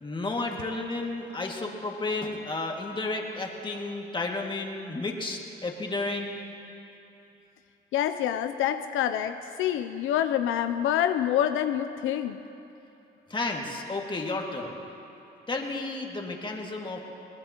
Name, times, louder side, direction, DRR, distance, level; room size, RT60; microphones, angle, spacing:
voice 1, 0.0-6.4 13.3-14.8 15.5-17.0, left 2 dB, 25° left, 0 dB, 2.0 m, -32 dB
voice 2, 7.9-12.4, left 10 dB, 85° left, 8 dB, 0.5 m, -27 dB
22.0 x 19.0 x 2.9 m, 2.9 s
cardioid pair, 90°, 20 cm